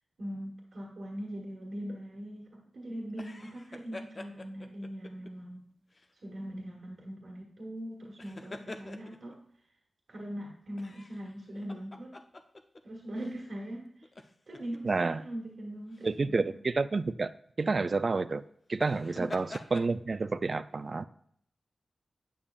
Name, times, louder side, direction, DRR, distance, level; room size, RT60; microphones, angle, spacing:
voice 1, 0.2-5.7 6.2-9.4 10.1-12.2 12.8-14.1 14.5-16.5 19.0-19.4, equal, 70° right, -2 dB, 1.4 m, -41 dB
sound 1, 3.1-5.3 5.9-6.1 8.0-9.3 10.8-12.8 13.2-13.3 14.0-14.8 15.9-16.1 18.7-19.9, left 2 dB, 40° left, 0.6 m, -46 dB
voice 2, 14.8-15.2 16.0-17.3 17.6-18.4 18.7-21.1, right 3 dB, 50° right, 13 dB, 0.3 m, -29 dB
8.6 x 6.9 x 2.4 m, 0.68 s
cardioid pair, 65°, 0 cm